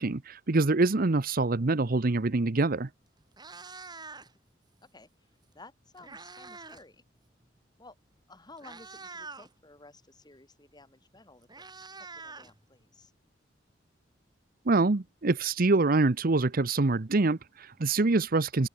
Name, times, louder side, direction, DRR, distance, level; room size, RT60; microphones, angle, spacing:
voice 1, 0.0-2.9 14.7-18.7, right 3 dB, 50° right, 0.8 m, -25 dB
Meow, 2.7-2.9 3.2-4.5 5.6-6.9 7.2-7.4 8.1-8.2 8.6-9.5 10.8-10.9 11.2-13.1, right 4 dB, 25° right, 5.0 m, -46 dB
voice 2, 5.5-7.0 7.8-8.0 8.3-13.1, left 2 dB, 25° left, 5.6 m, -54 dB
open air
head